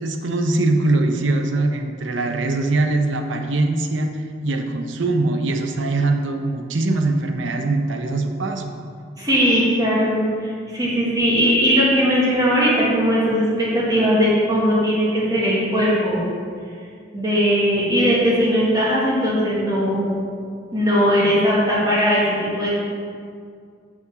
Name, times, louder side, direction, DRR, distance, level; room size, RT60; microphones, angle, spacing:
voice 1, 0.0-8.8, right 2 dB, 70° right, 5 dB, 0.8 m, -22 dB
voice 2, 9.2-16.3 17.1-20.1 20.7-22.7, equal, 20° right, -6 dB, 1.8 m, -19 dB
6.8 x 5.1 x 7.0 m, 2.2 s
head